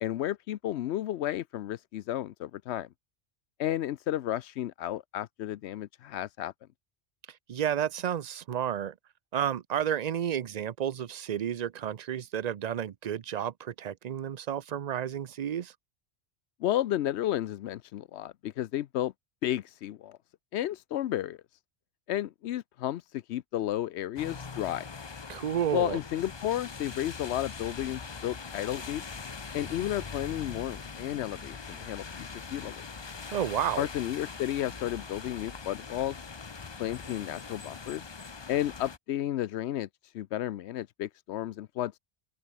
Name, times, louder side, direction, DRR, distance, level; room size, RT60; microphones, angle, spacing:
voice 1, 0.0-2.9 3.6-6.5 16.6-19.1 19.4-20.2 20.5-21.4 22.1-24.8 25.7-29.0 29.5-32.8 33.8-36.2 36.8-38.1 38.5-42.0, left 12 dB, 85° left, 0.9 m, -32 dB
voice 2, 7.5-8.9 9.3-15.7 25.3-26.0 33.3-33.9, right 9 dB, 50° right, 0.6 m, -31 dB
sound 1, 24.2-39.0, left 5 dB, 30° left, 0.6 m, -42 dB
open air
omnidirectional pair, 1.1 m